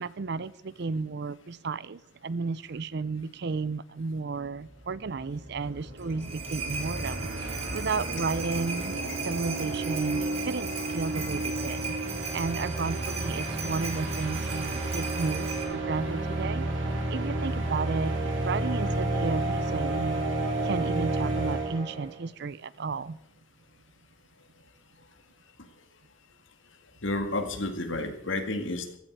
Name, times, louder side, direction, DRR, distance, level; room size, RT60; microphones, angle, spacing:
voice 1, 0.0-8.9 9.2-18.1 18.4-20.3 20.6-23.2, right 4 dB, 60° right, 0.5 m, -33 dB
sound 1, 4.4-4.5 4.7-22.2, right 2 dB, 80° right, 3.3 m, -31 dB
sound 2, 6.0-15.6, right 5 dB, 35° right, 2.6 m, -38 dB
voice 2, 27.0-29.0, left 2 dB, 75° left, 2.0 m, -31 dB
15.5 x 13.5 x 4.7 m
head